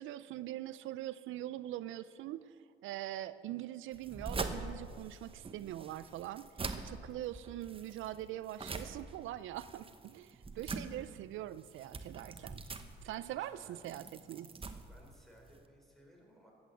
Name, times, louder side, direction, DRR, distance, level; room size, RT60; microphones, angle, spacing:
voice 1, 0.0-2.5 2.8-6.5 6.8-12.6 13.0-14.5, right 13 dB, 80° right, 15 dB, 0.4 m, -43 dB
sound 1, 3.9-15.7, right 3 dB, 25° right, 1.1 m, -44 dB
voice 2, 13.2-13.8 14.9-16.5, equal, ahead, -1 dB, 4.1 m, -60 dB
14.0 x 8.8 x 7.7 m, 2.1 s
cardioid pair, 90°, 20 cm